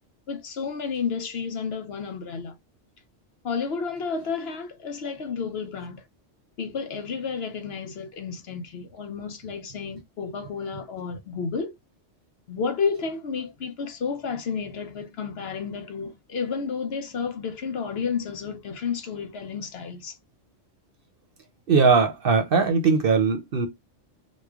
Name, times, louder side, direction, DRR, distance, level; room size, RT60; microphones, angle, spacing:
voice 1, 0.3-2.5 3.4-6.0 6.6-11.7 12.5-20.2, left 5 dB, 60° left, 0.9 m, -31 dB
voice 2, 21.7-23.7, right 5 dB, 55° right, 0.8 m, -20 dB
3.2 x 2.2 x 3.5 m
omnidirectional pair, 1.3 m